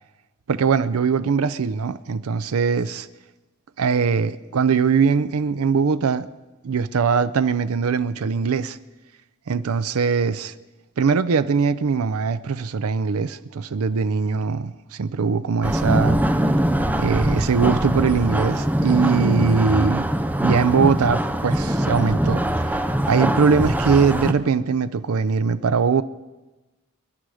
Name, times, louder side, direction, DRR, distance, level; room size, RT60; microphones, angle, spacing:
voice 1, 0.5-3.1 3.8-6.3 6.6-8.8 9.5-10.5 11.0-16.2 17.0-20.1 20.4-22.4 23.1-26.0, right 5 dB, 85° right, 0.5 m, -21 dB
sound 1, 15.6-24.3, right 1 dB, 10° right, 0.5 m, -22 dB
22.5 x 10.5 x 4.9 m
head